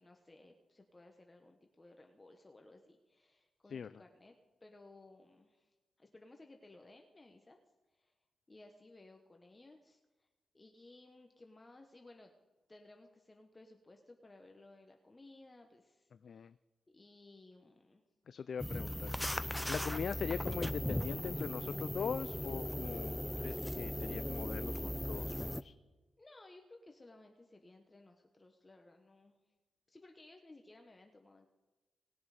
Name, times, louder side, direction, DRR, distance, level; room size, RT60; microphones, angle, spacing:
voice 1, 0.0-4.3 4.6-7.6 7.9-8.1 8.5-10.3 10.5-12.3 12.7-16.5 16.9-18.0 21.3-21.4 26.2-29.4 29.9-31.5, left 2 dB, 25° left, 3 dB, 1.2 m, -59 dB
voice 2, 16.2-16.5 18.3-19.1 19.4-25.7, left 6 dB, 65° left, 13 dB, 0.3 m, -41 dB
sound 1, 18.6-25.6, left 1 dB, 5° left, 0.5 m, -38 dB
20.0 x 7.0 x 5.1 m, 1.2 s
cardioid pair, 65°, 0 cm